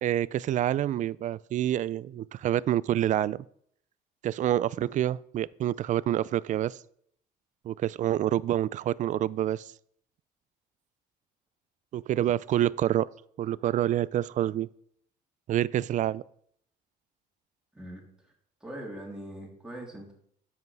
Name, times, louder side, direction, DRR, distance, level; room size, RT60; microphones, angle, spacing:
voice 1, 0.0-3.4 4.2-6.8 7.7-9.6 11.9-13.1 13.4-14.7 15.5-16.2, right 12 dB, 50° right, 0.4 m, -27 dB
voice 2, 17.7-18.0 18.6-20.1, right 1 dB, 5° right, 3.3 m, -41 dB
9.5 x 7.8 x 4.7 m
cardioid pair, 110°, 17 cm